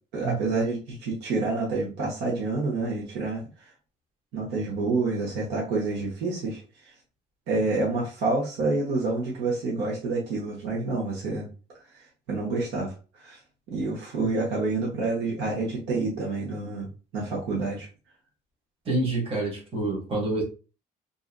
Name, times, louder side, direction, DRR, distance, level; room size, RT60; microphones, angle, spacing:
voice 1, 0.1-3.4 4.3-6.6 7.5-11.5 12.3-13.4 13.7-16.9 17.1-17.9, right 3 dB, 80° right, -3 dB, 1.0 m, -28 dB
voice 2, 18.8-20.4, right 2 dB, 35° right, -1 dB, 1.1 m, -27 dB
2.6 x 2.5 x 2.5 m, 0.34 s
cardioid pair, 110°, 17 cm